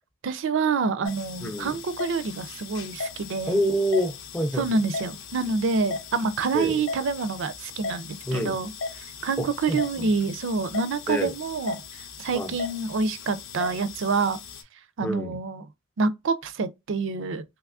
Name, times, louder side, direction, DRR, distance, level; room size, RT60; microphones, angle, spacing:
voice 1, 0.2-3.6 4.6-8.7 9.2-11.8 12.2-14.4 15.0-15.6 16.0-17.4, right 4 dB, 65° right, 0.4 m, -27 dB
sound 1, 1.0-14.6, left 4 dB, 70° left, 0.7 m, -38 dB
voice 2, 1.4-1.8 3.5-4.8 6.5-6.8 8.2-8.6 9.4-10.1 11.1-11.3 12.3-12.5 15.0-15.4, equal, 10° left, 0.5 m, -27 dB
3.4 x 2.9 x 2.4 m
head